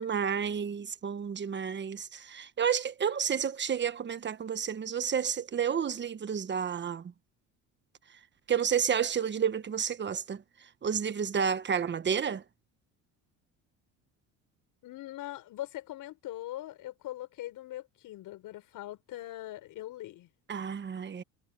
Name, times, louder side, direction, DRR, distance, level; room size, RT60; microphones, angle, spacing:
voice 1, 0.0-7.0 8.5-10.4 10.8-12.4 20.5-21.2, right 7 dB, 30° right, 1.3 m, -30 dB
voice 2, 14.8-20.3, left 15 dB, 65° left, 6.2 m, -41 dB
cardioid pair, 105°, 34 cm